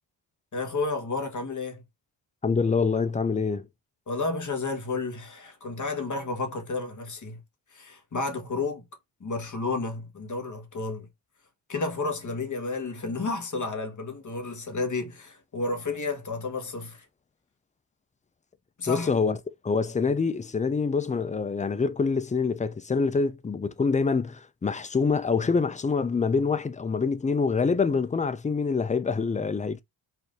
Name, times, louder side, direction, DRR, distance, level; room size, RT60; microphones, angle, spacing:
voice 1, 0.5-1.8 4.1-7.4 7.7-8.8 9.2-11.1 11.7-17.0 18.8-19.1, left 3 dB, 40° left, 1.4 m, -31 dB
voice 2, 2.4-3.7 18.9-19.4 19.6-29.8, left 4 dB, 15° left, 0.3 m, -25 dB
4.4 x 2.6 x 3.5 m
cardioid pair, 105°, 48 cm